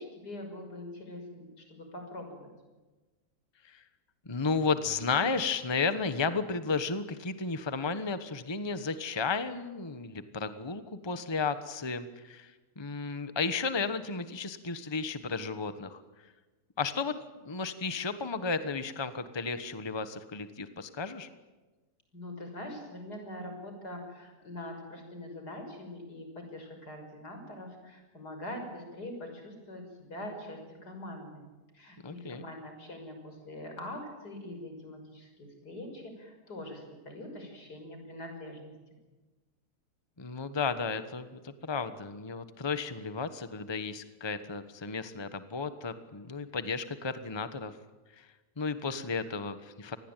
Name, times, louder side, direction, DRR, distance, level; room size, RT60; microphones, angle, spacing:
voice 1, 0.0-2.5 22.1-31.5 31.7-39.0, left 1 dB, 80° left, 4 dB, 6.8 m, -43 dB
voice 2, 4.2-16.0 16.8-17.2 17.4-21.3 32.0-32.5 40.2-47.8 48.2-48.3 48.6-50.0, left 4 dB, 20° left, 11 dB, 1.2 m, -33 dB
27.5 x 20.5 x 9.2 m, 1.2 s
omnidirectional pair, 1.7 m